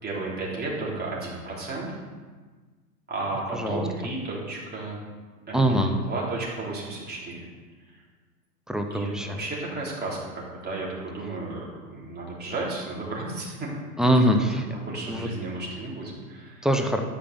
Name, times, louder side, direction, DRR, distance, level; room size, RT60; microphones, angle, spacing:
voice 1, 0.0-2.0 3.1-5.0 5.5-7.5 7.9-8.0 8.9-13.7 14.7-16.7, right 2 dB, 20° right, -4 dB, 3.9 m, -33 dB
voice 2, 3.5-3.8 5.5-5.9 8.7-9.3 14.0-14.6 15.1-15.3 16.6-17.0, equal, ahead, 4 dB, 1.0 m, -23 dB
12.5 x 5.4 x 7.1 m, 1.4 s
hypercardioid pair, 105°, 49 cm